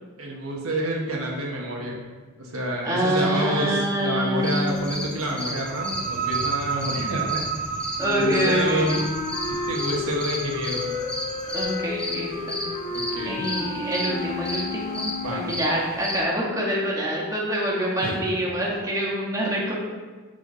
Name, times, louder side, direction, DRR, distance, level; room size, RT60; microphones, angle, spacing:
voice 1, 0.2-2.0 2.4-7.4 8.2-9.0 9.7-10.9 12.9-13.5 15.2-15.4 18.0-18.1, right 1 dB, 80° right, -1 dB, 1.5 m, -28 dB
voice 2, 2.8-5.0 8.0-9.1 11.5-12.6 13.2-19.7, equal, 15° right, -4 dB, 1.5 m, -26 dB
sound 1, 4.4-16.2, left 1 dB, 5° left, 1.0 m, -34 dB
sound 2, 5.6-13.1, right 6 dB, 40° right, 0.5 m, -33 dB
Wind instrument woodwind instrument, 8.0-15.7, left 4 dB, 50° left, 1.8 m, -32 dB
8.8 x 5.6 x 3.9 m, 1.4 s
head